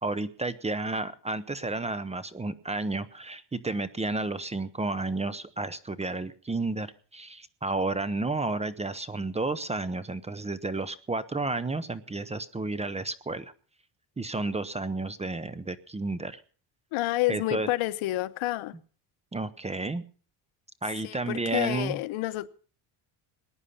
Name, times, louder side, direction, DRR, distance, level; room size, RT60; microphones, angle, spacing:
voice 1, 0.0-6.9 7.1-13.5 14.2-16.4 17.3-17.7 19.3-20.0 20.8-22.0, right 3 dB, 15° right, 0.7 m, -31 dB
voice 2, 16.9-18.7 21.0-22.5, left 17 dB, 80° left, 0.9 m, -29 dB
20.0 x 10.0 x 5.6 m
cardioid pair, 125°, 48 cm